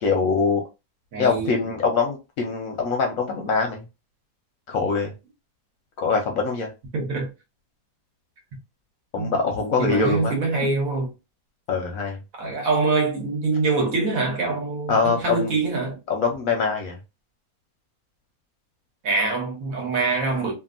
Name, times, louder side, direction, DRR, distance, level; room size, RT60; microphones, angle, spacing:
voice 1, 0.0-0.6 1.2-3.8 4.7-5.1 6.0-6.7 9.1-10.3 11.7-12.2 14.9-15.5 16.1-17.0, left 4 dB, 65° left, 0.9 m, -23 dB
voice 2, 1.1-1.7 6.9-7.3 9.2-9.4 9.8-11.1 12.4-16.0 19.0-20.5, right 3 dB, 60° right, 1.3 m, -24 dB
2.7 x 2.7 x 2.5 m
omnidirectional pair, 1.8 m